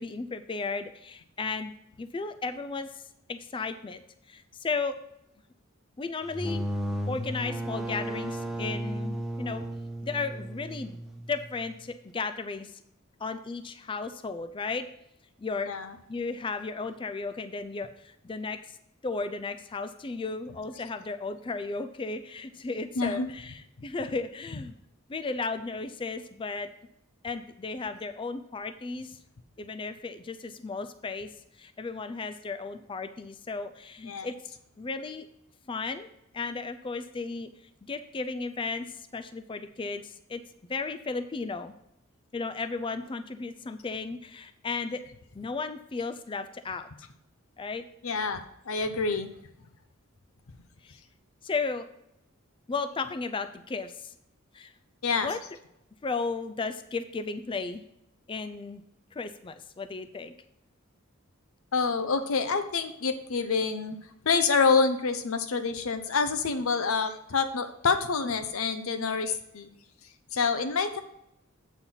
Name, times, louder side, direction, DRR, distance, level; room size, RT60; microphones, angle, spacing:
voice 1, 0.0-2.9 3.3-4.0 4.3-4.9 6.0-6.6 7.1-9.6 10.0-11.0 11.3-12.7 13.2-14.9 15.4-15.7 16.1-18.6 19.0-24.7 25.1-26.7 27.2-29.2 29.6-31.3 31.6-35.3 35.7-36.1 36.3-37.5 37.9-38.9 39.1-40.4 40.7-41.7 42.3-45.0 45.3-46.9 47.6-47.8 50.8-51.0 51.4-51.9 52.7-54.1 54.5-54.7 55.2-55.4 56.0-57.8 58.3-58.8 59.1-60.3, left 4 dB, 25° left, 9 dB, 0.4 m, -34 dB
sound 1, 6.2-11.8, right 1 dB, ahead, 0.7 m, -34 dB
voice 2, 23.0-23.3 34.1-34.3 48.0-49.3 55.0-55.3 61.7-64.0 64.2-69.7 70.3-71.0, left 5 dB, 75° left, 8 dB, 0.6 m, -27 dB
8.1 x 4.4 x 5.6 m, 0.80 s
head